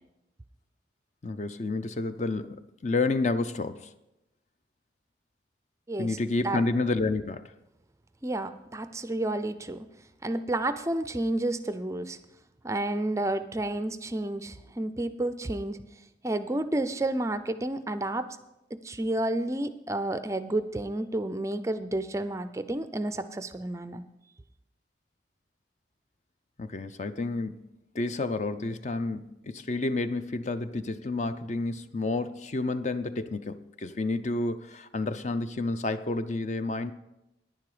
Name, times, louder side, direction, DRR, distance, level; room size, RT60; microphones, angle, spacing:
voice 1, 1.2-3.9 6.0-7.5 26.6-27.7 27.9-36.9, left 3 dB, 40° left, 11 dB, 0.5 m, -30 dB
voice 2, 5.9-6.2 6.4-6.6 8.2-9.9 10.2-12.2 12.6-15.8 16.2-18.3 18.8-24.0, right 1 dB, 15° right, 11 dB, 0.4 m, -30 dB
10.5 x 10.0 x 4.9 m, 0.92 s
head